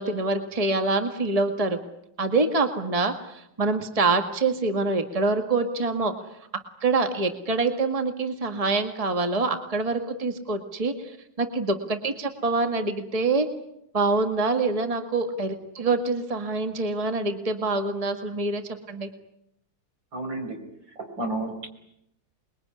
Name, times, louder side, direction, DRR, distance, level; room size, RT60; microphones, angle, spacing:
voice 1, 0.0-1.8 2.2-6.2 6.8-13.5 13.9-19.1, right 3 dB, 20° right, 7 dB, 1.9 m, -25 dB
voice 2, 20.1-20.6 21.0-21.7, right 2 dB, 75° right, 5 dB, 5.6 m, -31 dB
28.0 x 21.5 x 9.9 m, 0.78 s
omnidirectional pair, 2.0 m